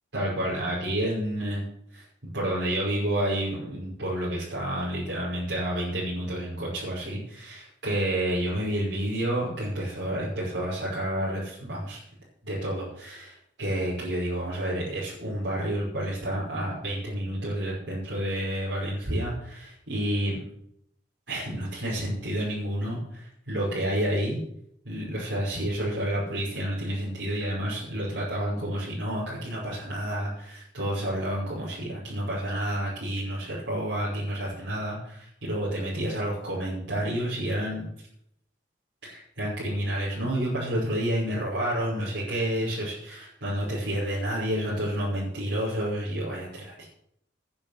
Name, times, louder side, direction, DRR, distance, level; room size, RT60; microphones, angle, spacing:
voice 1, 0.1-1.6 1.9-2.0 2.3-12.0 12.4-20.4 21.3-24.4 24.8-37.8 39.0-46.9, right 1 dB, 80° right, -8 dB, 5.8 m, -30 dB
10.0 x 9.7 x 8.1 m, 0.71 s
head